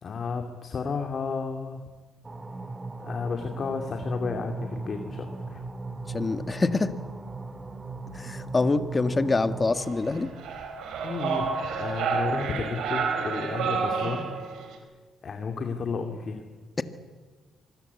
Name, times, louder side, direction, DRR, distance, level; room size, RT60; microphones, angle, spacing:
voice 1, 0.0-1.8 3.0-5.6 11.0-11.5 11.8-14.3 15.2-16.4, left 5 dB, 50° left, 4 dB, 2.5 m, -32 dB
sound 1, 2.2-9.8, right 3 dB, 30° right, 2.1 m, -38 dB
voice 2, 6.1-6.9 8.1-10.3, left 3 dB, 25° left, 10 dB, 1.7 m, -25 dB
sound 2, 9.7-14.8, right 5 dB, 80° right, 4.5 m, -30 dB
25.0 x 21.0 x 8.4 m, 1.4 s
cardioid pair, 90°, 0 cm